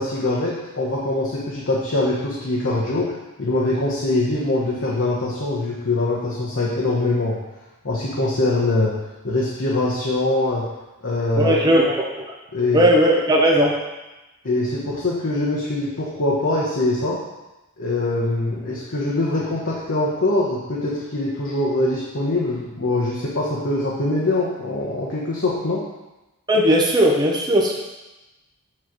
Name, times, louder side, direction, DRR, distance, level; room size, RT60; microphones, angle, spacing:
voice 1, 0.0-7.4 7.8-10.7 11.0-11.6 12.5-12.9 14.4-17.2 17.8-25.8, left 2 dB, 60° left, -5 dB, 1.0 m, -23 dB
voice 2, 11.4-12.1 12.7-13.7 26.5-27.8, equal, 20° right, -3 dB, 0.8 m, -17 dB
7.6 x 3.3 x 6.0 m, 1.0 s
head